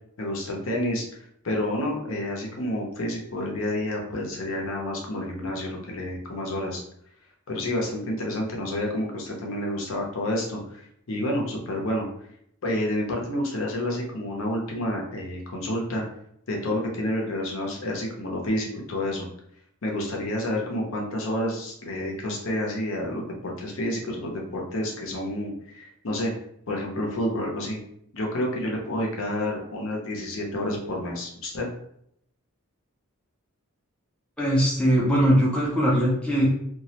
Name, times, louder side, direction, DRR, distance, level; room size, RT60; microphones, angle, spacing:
voice 1, 0.2-1.0 1.4-6.8 7.5-12.0 12.6-16.0 16.5-19.3 19.8-26.3 26.7-27.8 28.1-31.7, left 1 dB, 65° left, -1 dB, 0.6 m, -29 dB
voice 2, 34.4-36.5, equal, 5° left, -6 dB, 0.4 m, -21 dB
2.3 x 2.0 x 2.8 m, 0.72 s
head